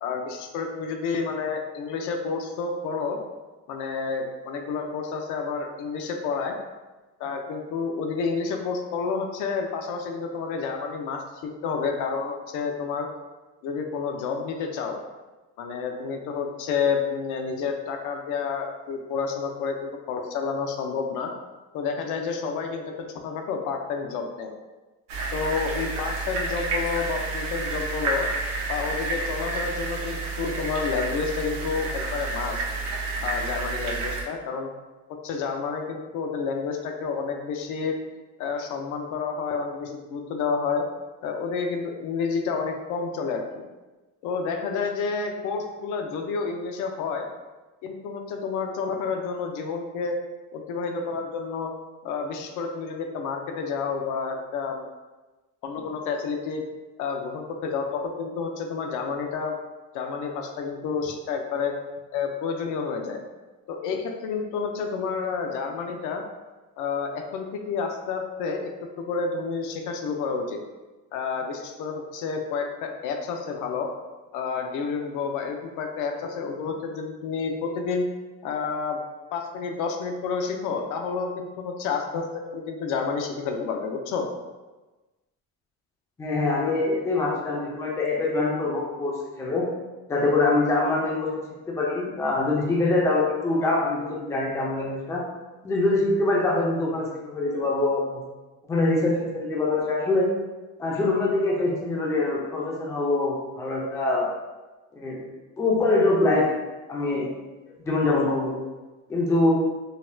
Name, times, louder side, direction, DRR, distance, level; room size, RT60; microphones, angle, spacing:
voice 1, 0.0-3.2 3.7-6.6 7.2-13.1 13.6-15.0 15.6-21.3 21.7-22.8 23.1-24.5 25.3-28.3 28.7-32.6 33.2-34.7 35.2-37.9 38.4-40.8 41.2-43.7 44.2-47.3 47.8-50.2 50.5-51.7 52.0-54.8 55.6-56.6 57.0-59.5 59.9-61.8 62.1-63.2 63.7-66.2 66.8-68.7 69.0-70.6 71.1-73.9 74.3-78.1 78.4-79.0 79.3-84.3, left 5 dB, 70° left, 3 dB, 0.5 m, -29 dB
sound 1, 25.1-34.2, right 3 dB, 90° right, 0.7 m, -30 dB
voice 2, 86.2-89.7 90.1-91.3 91.7-95.2 95.6-98.2 98.7-100.3 100.8-104.3 104.9-105.2 105.6-106.5 106.9-107.3 107.9-108.5 109.1-109.5, left 2 dB, 10° left, -3 dB, 0.4 m, -24 dB
4.0 x 2.1 x 2.5 m, 1.2 s
cardioid pair, 165°, 32 cm